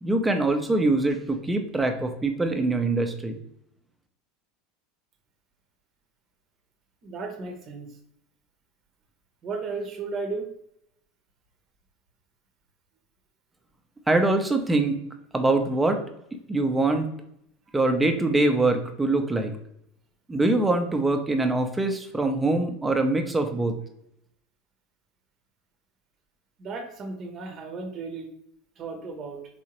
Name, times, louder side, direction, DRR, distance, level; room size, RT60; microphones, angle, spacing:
voice 1, 0.0-3.4 14.1-15.0 15.3-16.0 16.5-17.1 17.7-19.5 20.3-23.7, right 2 dB, 15° right, 5 dB, 0.8 m, -23 dB
voice 2, 7.0-7.9 9.4-10.5 20.3-20.5 26.6-28.3 28.8-29.4, right 4 dB, 40° right, 5 dB, 1.0 m, -34 dB
4.2 x 3.7 x 3.0 m, 0.76 s
hypercardioid pair, 80°, 0 cm